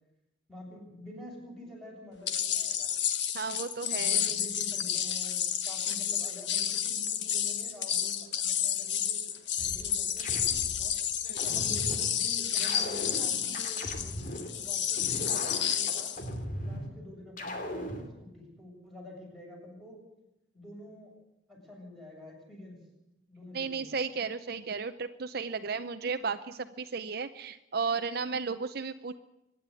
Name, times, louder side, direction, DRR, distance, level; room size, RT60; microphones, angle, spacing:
voice 1, 0.5-3.0 4.1-9.3 9.5-10.9 11.4-16.1 16.6-20.0 20.5-21.1 21.5-22.8 23.3-24.0, left 1 dB, ahead, -2 dB, 7.5 m, -47 dB
sound 1, 2.3-16.2, left 9 dB, 70° left, 1.5 m, -30 dB
voice 2, 3.3-4.2 11.2-11.4 23.5-29.1, right 5 dB, 55° right, 10 dB, 0.7 m, -34 dB
sound 2, 9.6-10.9 11.4-12.1 12.6-14.5 15.0-16.9 17.4-18.1, equal, 45° left, 2.7 m, -38 dB
24.5 x 11.0 x 9.7 m, 0.92 s
head